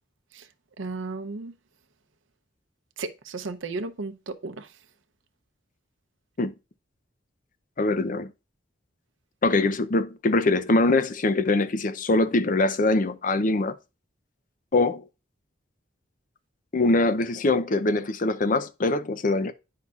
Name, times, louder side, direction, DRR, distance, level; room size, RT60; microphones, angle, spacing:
voice 1, 0.8-1.5 3.0-4.7, right 3 dB, 80° right, 0.7 m, -34 dB
voice 2, 7.8-8.3 9.4-13.7 14.7-15.0 16.7-19.5, left 2 dB, 45° left, 0.6 m, -23 dB
9.6 x 5.6 x 2.4 m
head